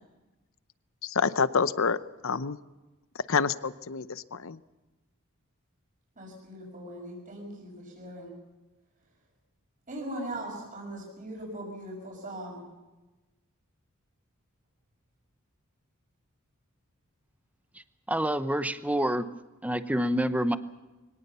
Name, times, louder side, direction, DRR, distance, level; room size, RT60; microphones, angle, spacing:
voice 1, 1.0-2.6 3.3-4.6, left 5 dB, 65° left, 15 dB, 0.8 m, -28 dB
voice 2, 6.2-8.3 9.9-12.6, right 1 dB, 40° right, -2 dB, 6.0 m, -40 dB
voice 3, 18.1-19.3 19.6-20.6, right 1 dB, 5° right, 12 dB, 0.8 m, -27 dB
23.5 x 18.0 x 6.9 m, 1.1 s
head